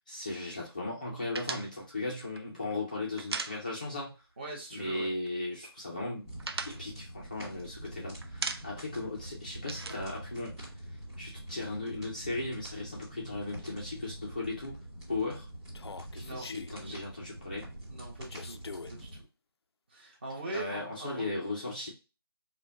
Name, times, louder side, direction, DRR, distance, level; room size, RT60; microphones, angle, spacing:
voice 1, 0.1-4.1 4.7-6.4 6.7-10.6 10.9-14.7 15.1-15.5 16.1-17.6 20.5-21.9, left 2 dB, 20° left, -4 dB, 0.5 m, -37 dB
sound 1, 1.3-4.1 4.4-4.6 4.9-5.6 5.9-7.9 8.2-9.0 9.2-11.1, right 4 dB, 75° right, 0.6 m, -39 dB
voice 2, 4.4-5.1 16.2-16.5 16.8-17.0 17.9-18.6 18.9-19.2 19.9-21.2, right 2 dB, 25° right, -2 dB, 1.0 m, -41 dB
sound 2, 6.2-19.2, right 1 dB, 5° right, 1.4 m, -45 dB
Human voice, 15.7-16.7 18.3-18.9, left 4 dB, 80° left, 0.4 m, -43 dB
5.3 x 2.2 x 2.5 m, 0.29 s
figure-of-eight pair, 175°, 13 cm